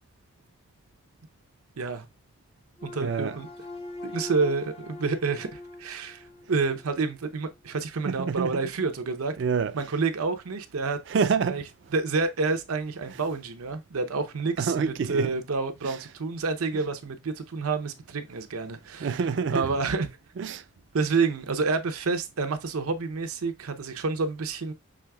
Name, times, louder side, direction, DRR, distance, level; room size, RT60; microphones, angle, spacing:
voice 1, 1.8-2.1 2.8-3.5 4.0-9.4 9.7-11.0 11.5-11.6 11.9-19.1 19.5-20.1 20.9-24.7, right 4 dB, 85° right, 0.7 m, -29 dB
sound 1, 2.8-7.1, left 2 dB, 25° left, 0.4 m, -42 dB
voice 2, 3.0-3.4 8.0-8.6 9.4-9.7 11.1-11.6 14.6-15.3 15.8-16.0 19.0-19.7 20.4-20.6, right 5 dB, 55° right, 0.3 m, -27 dB
6.2 x 3.3 x 2.2 m
head